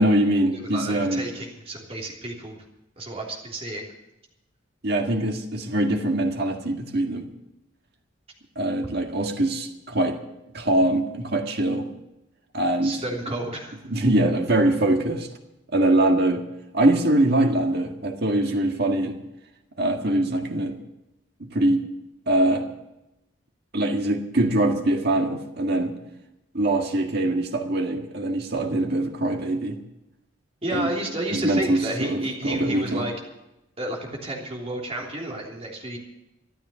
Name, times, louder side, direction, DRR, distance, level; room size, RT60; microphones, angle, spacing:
voice 1, 0.0-1.3 4.8-7.3 8.6-10.2 10.5-11.9 12.5-13.0 13.9-15.3 15.7-16.4 16.7-19.2 19.8-20.8 21.4-21.8 22.3-22.7 23.7-25.9 26.5-29.8 30.7-30.9 31.3-33.1, right 1 dB, 50° right, 4 dB, 1.7 m, -23 dB
voice 2, 0.7-2.6 3.0-3.9 12.8-13.8 30.6-33.1 33.8-36.0, right 1 dB, 30° right, -1 dB, 3.4 m, -31 dB
13.5 x 12.5 x 6.8 m, 0.90 s
head